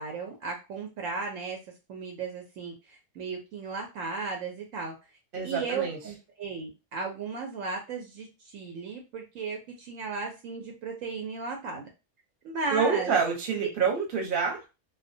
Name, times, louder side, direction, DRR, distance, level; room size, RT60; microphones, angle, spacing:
voice 1, 0.0-1.6 1.9-4.9 5.4-11.9 12.4-13.1, right 4 dB, 70° right, 2 dB, 0.9 m, -35 dB
voice 2, 5.3-6.0 12.7-14.7, right 6 dB, 45° right, 0 dB, 0.9 m, -27 dB
2.3 x 2.1 x 2.6 m, 0.27 s
omnidirectional pair, 1.5 m